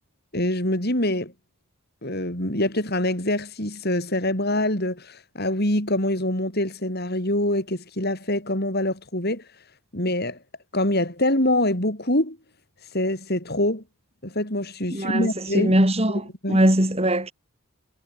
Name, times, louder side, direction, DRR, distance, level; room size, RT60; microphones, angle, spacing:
voice 1, 0.3-1.3 2.0-9.4 9.9-10.4 10.7-12.4 12.9-13.8 14.2-15.8 16.4-16.6, left 1 dB, 45° left, 7.3 m, -25 dB
voice 2, 14.9-15.3 15.5-17.3, right 1 dB, 25° right, 4.5 m, -21 dB
head